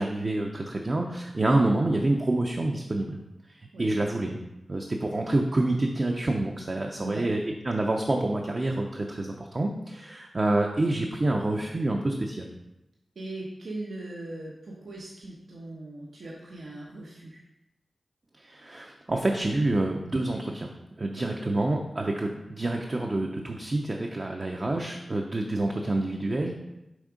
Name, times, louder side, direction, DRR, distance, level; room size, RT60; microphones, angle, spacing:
voice 1, 0.0-3.2 3.8-4.4 4.7-12.5 18.4-26.5, right 2 dB, 40° right, 1 dB, 0.6 m, -27 dB
voice 2, 13.1-17.4, right 2 dB, 80° right, -3 dB, 0.9 m, -39 dB
6.3 x 3.5 x 5.0 m, 0.92 s
wide cardioid pair, 80°, 0 cm